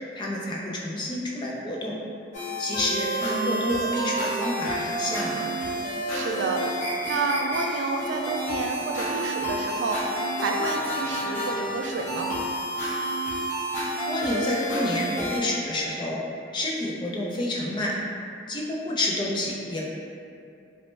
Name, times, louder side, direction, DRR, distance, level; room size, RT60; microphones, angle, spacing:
voice 1, 0.2-2.0 2.6-5.4 14.1-16.2 16.5-17.9 18.5-19.8, left 1 dB, 25° left, -4 dB, 0.3 m, -29 dB
sound 1, 2.3-15.4, right 1 dB, 45° left, 0.8 m, -29 dB
voice 2, 6.1-6.6 7.1-10.0 10.4-12.3, right 3 dB, 90° right, 2 dB, 0.3 m, -29 dB
3.0 x 2.1 x 3.1 m, 2.5 s
head